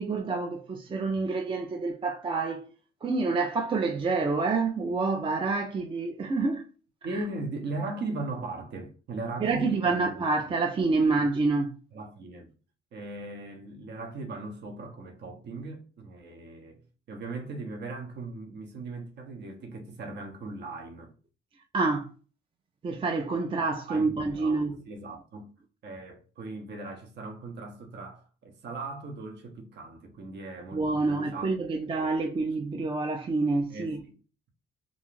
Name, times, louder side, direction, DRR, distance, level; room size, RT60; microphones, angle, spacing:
voice 1, 0.0-2.7 3.0-6.7 7.1-7.2 9.4-11.8 21.7-22.1 22.8-24.8 30.7-34.0, right 3 dB, 25° right, 0.4 m, -27 dB
voice 2, 7.0-10.1 11.9-12.5 12.9-16.8 17.1-21.1 23.9-24.6 24.9-25.5 25.8-31.5 31.8-32.1 33.7-33.9, right 2 dB, 60° right, 0.8 m, -38 dB
2.6 x 2.3 x 3.0 m
cardioid pair, 90°, 20 cm